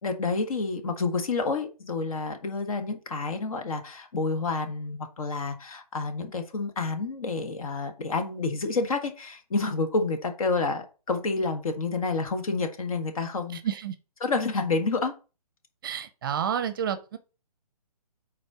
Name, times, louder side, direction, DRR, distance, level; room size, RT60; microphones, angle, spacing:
voice 1, 0.0-13.6 14.2-15.1, left 3 dB, 60° left, 1.4 m, -29 dB
voice 2, 13.5-14.0 15.8-17.2, right 8 dB, 35° right, 0.6 m, -30 dB
5.2 x 4.2 x 4.8 m
hypercardioid pair, 160°, 20 cm